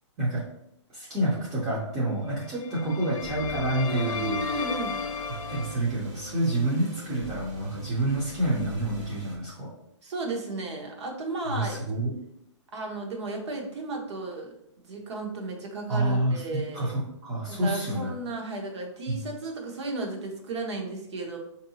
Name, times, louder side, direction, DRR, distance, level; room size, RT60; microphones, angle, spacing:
voice 1, 0.9-4.5 5.5-9.7 11.5-12.1 15.9-18.1 19.1-19.2, right 1 dB, 15° right, -6 dB, 0.6 m, -28 dB
sound 1, 2.4-5.8, left 5 dB, 85° left, 0.5 m, -34 dB
sound 2, 3.2-6.6 6.9-7.0, left 2 dB, 40° left, 0.5 m, -45 dB
voice 2, 3.8-5.0 10.0-11.8 12.7-16.9 17.5-21.4, right 3 dB, 60° right, 1 dB, 1.0 m, -34 dB
sound 3, 4.1-9.4, equal, 90° right, 1.4 m, -44 dB
4.7 x 2.6 x 2.7 m, 0.78 s
hypercardioid pair, 165°, 16 cm